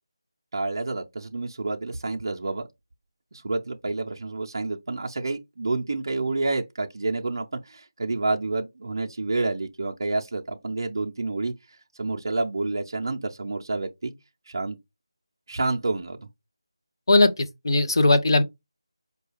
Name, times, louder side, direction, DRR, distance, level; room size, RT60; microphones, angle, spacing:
voice 1, 0.5-2.6 3.3-11.5 12.0-14.1 14.5-14.8 15.5-16.3, right 3 dB, 45° right, 0.5 m, -29 dB
voice 2, 17.1-18.4, left 2 dB, 55° left, 0.6 m, -19 dB
4.6 x 2.3 x 3.3 m
figure-of-eight pair, 175°, 3 cm